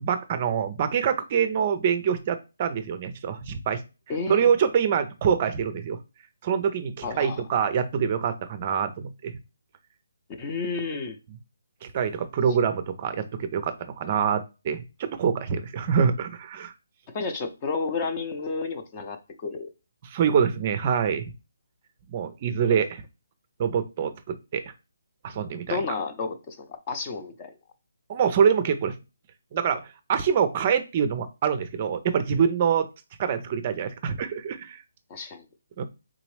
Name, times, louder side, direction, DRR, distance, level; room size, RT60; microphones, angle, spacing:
voice 1, 0.0-3.8 4.3-6.0 6.4-9.3 11.8-16.7 20.0-21.2 22.1-23.0 23.6-24.7 25.2-25.8 28.1-29.0 29.5-32.9 33.2-34.8 35.8-35.9, right 7 dB, 35° right, 0.4 m, -25 dB
voice 2, 4.1-4.5 7.0-7.4 10.4-11.2 14.1-14.2 17.1-19.7 25.7-27.5 35.1-35.4, left 4 dB, 25° left, 0.6 m, -31 dB
3.6 x 2.9 x 3.2 m
hypercardioid pair, 155°, 0 cm